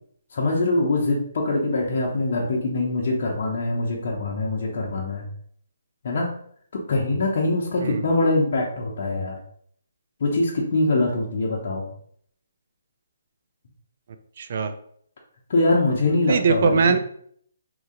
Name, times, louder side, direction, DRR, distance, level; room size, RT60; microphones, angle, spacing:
voice 1, 0.3-5.3 6.0-6.3 6.7-9.4 10.2-11.9 15.5-16.9, left 2 dB, 55° left, -3 dB, 0.7 m, -23 dB
voice 2, 14.4-14.7 16.3-17.0, right 5 dB, 50° right, 9 dB, 0.4 m, -21 dB
2.9 x 2.7 x 3.7 m, 0.63 s
hypercardioid pair, 155°, 0 cm